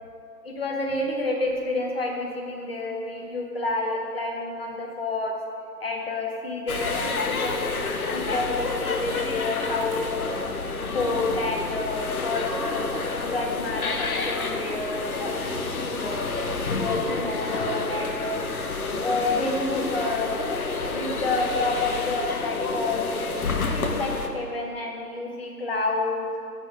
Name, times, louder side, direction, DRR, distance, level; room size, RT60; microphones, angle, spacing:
voice 1, 0.4-5.4 5.8-10.3 10.9-12.9 13.2-16.3 16.8-18.4 19.0-23.0 23.5-26.3, left 2 dB, 35° left, 0 dB, 1.1 m, -29 dB
sound 1, 6.7-24.3, left 3 dB, 60° left, 0.8 m, -29 dB
12.0 x 4.5 x 4.7 m, 2.5 s
figure-of-eight pair, 165°, 49 cm